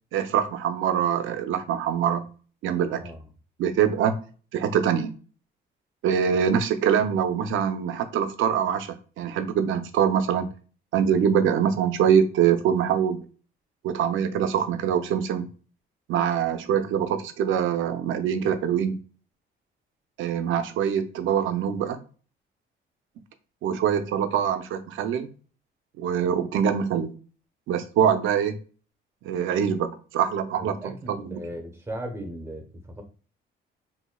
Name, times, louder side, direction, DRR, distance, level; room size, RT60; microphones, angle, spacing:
voice 1, 0.1-2.3 2.6-3.0 3.6-4.2 4.5-5.1 6.0-10.5 10.9-13.3 13.8-15.5 16.1-19.0 20.2-22.0 23.6-25.3 26.0-27.1 27.7-28.6 29.2-31.4, right 8 dB, 80° right, 9 dB, 0.6 m, -24 dB
voice 2, 30.6-33.0, right 1 dB, 15° right, 4 dB, 1.0 m, -37 dB
4.1 x 2.7 x 2.3 m, 0.38 s
cardioid pair, 90°, 20 cm